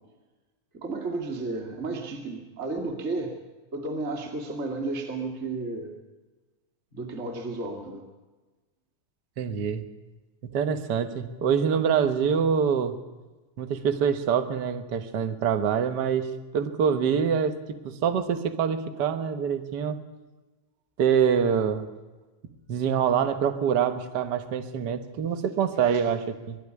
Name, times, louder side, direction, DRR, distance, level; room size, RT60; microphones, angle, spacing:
voice 1, 0.7-3.3 3.7-5.9 6.9-8.1 25.8-26.1, right 3 dB, 25° right, 2 dB, 2.4 m, -33 dB
voice 2, 9.4-9.8 10.4-12.9 13.6-20.0 21.0-21.9 22.7-26.6, right 7 dB, 50° right, 10 dB, 1.3 m, -25 dB
22.0 x 12.5 x 9.6 m, 1.2 s
omnidirectional pair, 3.5 m